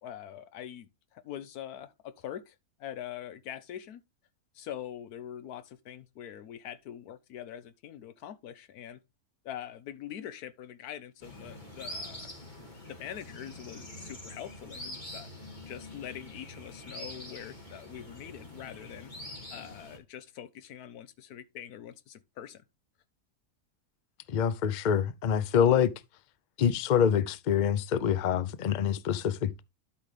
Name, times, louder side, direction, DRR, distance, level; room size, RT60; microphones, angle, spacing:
voice 1, 0.0-4.0 4.5-9.0 9.4-12.3 12.6-15.3 15.7-19.1 19.5-22.6, left 10 dB, 85° left, 1.2 m, -43 dB
sound 1, 11.2-20.0, left 1 dB, 30° left, 2.4 m, -45 dB
voice 2, 24.3-25.9 26.6-29.6, left 8 dB, 55° left, 0.5 m, -26 dB
12.0 x 5.6 x 3.3 m
omnidirectional pair, 1.6 m